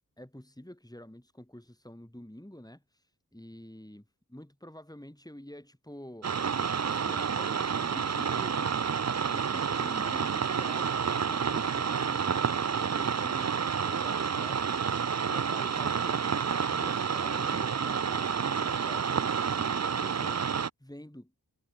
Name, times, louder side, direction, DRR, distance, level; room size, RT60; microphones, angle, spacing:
voice 1, 0.2-3.0 3.3-6.3 6.9-8.9 9.3-14.8 15.3-16.4 16.7-20.5 20.8-21.3, left 1 dB, 10° left, 7.3 m, -48 dB
sound 1, 6.2-20.7, right 6 dB, 45° right, 0.5 m, -29 dB
wide cardioid pair, 65°, 38 cm